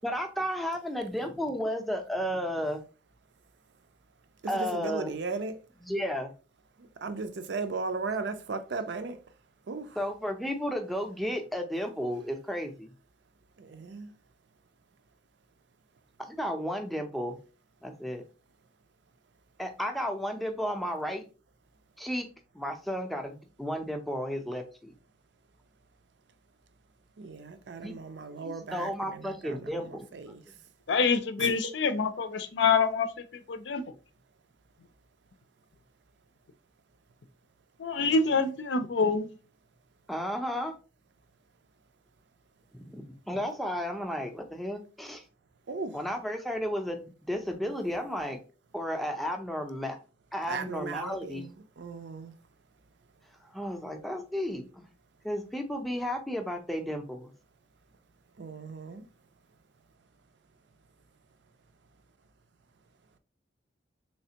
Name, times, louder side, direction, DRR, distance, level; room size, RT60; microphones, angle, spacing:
voice 1, 0.0-2.8 4.5-5.1 5.8-6.3 10.0-12.9 16.2-17.4 17.8-18.2 19.6-21.2 22.0-22.3 22.5-24.9 27.8-28.0 28.4-30.1 40.1-40.7 42.7-45.2 45.9-48.4 48.7-50.0 50.3-51.5 53.5-54.8 55.2-57.3, equal, ahead, 0.5 m, -33 dB
voice 2, 4.5-5.5 7.0-9.2 9.7-9.9 13.6-14.1 27.2-29.8 30.1-30.4 31.4-31.5 38.0-38.1 45.7-45.9 50.5-51.5 51.8-52.3 58.4-59.0, right 4 dB, 70° right, 0.5 m, -36 dB
voice 3, 30.9-33.1 33.5-33.8 37.8-39.3, left 4 dB, 70° left, 0.5 m, -26 dB
3.3 x 3.2 x 2.8 m
head